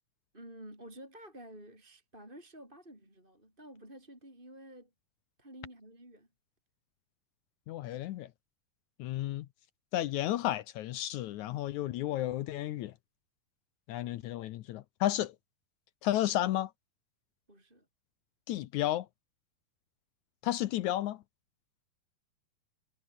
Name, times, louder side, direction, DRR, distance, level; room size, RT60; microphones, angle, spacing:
voice 1, 0.3-4.9 5.4-6.3 17.5-17.9, right 1 dB, 10° right, 8.1 m, -51 dB
voice 2, 7.7-8.3 9.0-9.5 9.9-12.9 13.9-15.3 16.0-16.7 18.5-19.1 20.4-21.2, left 13 dB, 75° left, 1.8 m, -32 dB
omnidirectional pair, 4.3 m